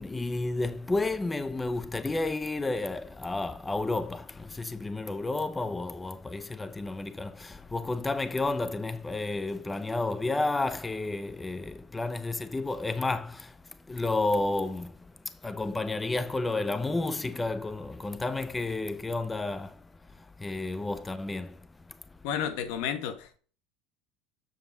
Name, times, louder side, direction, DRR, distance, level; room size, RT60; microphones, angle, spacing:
voice 1, 0.0-13.6 13.9-15.0 15.3-19.8 20.2-21.6, left 2 dB, 15° left, 0.5 m, -31 dB
voice 2, 22.2-23.4, left 8 dB, 70° left, 1.2 m, -32 dB
7.2 x 7.0 x 4.0 m
hypercardioid pair, 85°, 0 cm